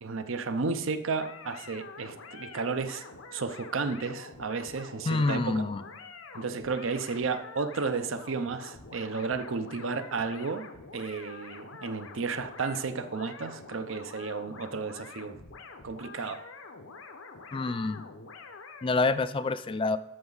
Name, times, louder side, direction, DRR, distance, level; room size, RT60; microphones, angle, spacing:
voice 1, 0.0-3.0 3.3-5.6 6.3-10.7 10.9-15.4 15.8-16.4, right 4 dB, 75° right, 10 dB, 0.7 m, -33 dB
sound 1, 1.1-18.9, left 4 dB, 85° left, 0.9 m, -47 dB
voice 2, 5.1-5.8 6.3-6.4 17.5-18.0 18.8-20.0, left 3 dB, 25° left, 13 dB, 0.3 m, -27 dB
12.5 x 5.9 x 4.0 m, 0.90 s
head